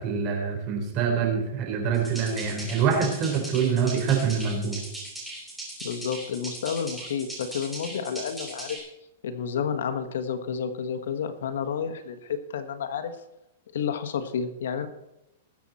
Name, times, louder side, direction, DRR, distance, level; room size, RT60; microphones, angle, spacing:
voice 1, 0.0-4.8, right 6 dB, 35° right, 2 dB, 4.0 m, -25 dB
sound 1, 1.9-8.8, right 1 dB, 5° right, 4.7 m, -39 dB
voice 2, 5.8-8.8 9.2-13.1 13.7-14.9, left 7 dB, 80° left, 9 dB, 1.4 m, -30 dB
20.5 x 7.7 x 4.3 m, 0.91 s
hypercardioid pair, 155°, 0 cm